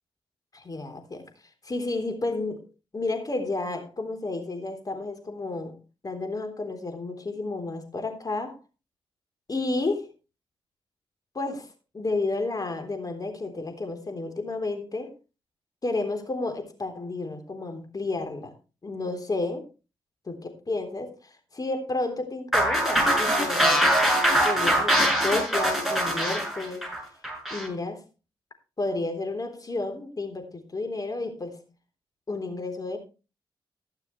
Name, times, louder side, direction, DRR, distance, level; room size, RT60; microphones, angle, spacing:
voice 1, 0.5-1.3 1.6-2.6 2.9-5.8 6.0-8.6 9.5-10.1 11.3-15.1 15.8-18.5 18.8-19.7 20.3-24.0 24.4-26.9 27.5-28.0 28.8-31.6 32.3-33.0, left 2 dB, 40° left, 6 dB, 3.7 m, -31 dB
sound 1, 22.5-27.7, right 1 dB, 5° right, 6.5 m, -23 dB
20.5 x 6.9 x 3.2 m, 0.31 s
cardioid pair, 60°, 10 cm